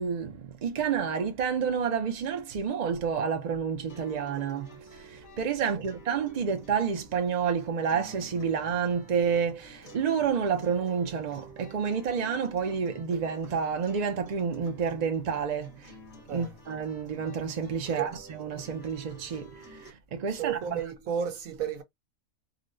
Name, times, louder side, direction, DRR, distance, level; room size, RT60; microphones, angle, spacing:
voice 1, 0.0-15.9 16.3-20.6, right 6 dB, 55° right, 0.4 m, -29 dB
sound 1, 3.9-19.9, equal, 75° left, 1.9 m, -51 dB
voice 2, 20.3-21.8, right 7 dB, 85° right, 1.3 m, -33 dB
4.0 x 2.1 x 2.5 m
omnidirectional pair, 1.4 m